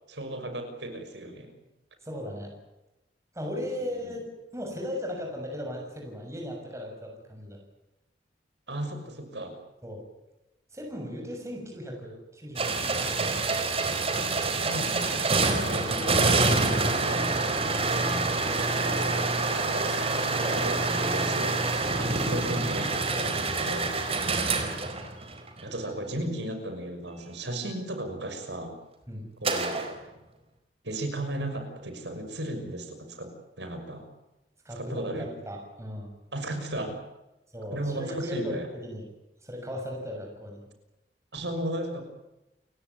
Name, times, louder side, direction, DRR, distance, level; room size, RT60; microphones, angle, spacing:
voice 1, 0.1-1.5 3.6-4.0 8.7-9.6 14.6-17.3 17.8-18.3 18.6-19.3 19.5-20.1 20.5-21.7 22.0-23.9 25.6-28.8 29.4-29.8 30.8-34.1 34.7-35.3 36.3-37.0 37.7-38.7 41.3-42.0, right 1 dB, 85° right, 7 dB, 6.3 m, -35 dB
voice 2, 2.0-2.6 3.3-7.6 9.8-10.0 10.7-13.6 15.7-15.8 19.8-19.9 20.4-20.9 23.1-23.4 29.1-29.3 34.7-36.1 37.5-39.1 39.4-40.6, equal, 15° right, 0 dB, 6.8 m, -37 dB
sound 1, 12.6-25.6 29.4-29.9, right 3 dB, 35° right, 4.3 m, -26 dB
29.5 x 17.0 x 9.6 m, 0.95 s
head